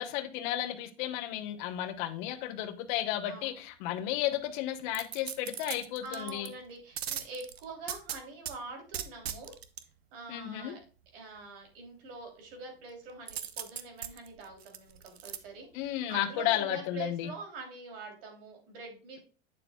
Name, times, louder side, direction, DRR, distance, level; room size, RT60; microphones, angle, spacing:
voice 1, 0.0-6.5 10.3-10.7 15.7-17.3, left 12 dB, 55° left, 0.9 m, -33 dB
voice 2, 3.2-3.6 6.0-9.5 10.1-10.8 11.1-19.2, right 4 dB, 65° right, 3.1 m, -45 dB
sound 1, 4.9-6.5 7.0-8.5 8.9-9.8 13.3-15.4 15.8-15.9, right 9 dB, 90° right, 0.7 m, -39 dB
8.8 x 6.8 x 2.3 m
hypercardioid pair, 110°, 30 cm